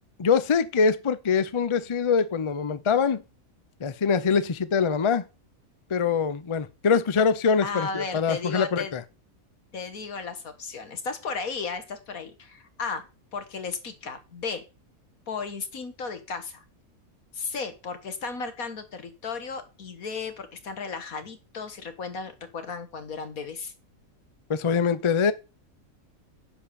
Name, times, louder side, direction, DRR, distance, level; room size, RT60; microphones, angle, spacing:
voice 1, 0.2-3.2 3.8-5.2 5.9-9.0 24.5-25.3, left 6 dB, 35° left, 0.5 m, -23 dB
voice 2, 7.6-8.9 9.7-13.1 13.3-14.7 15.3-16.6 17.3-23.7, left 5 dB, 90° left, 2.1 m, -34 dB
10.5 x 4.7 x 6.9 m
omnidirectional pair, 1.4 m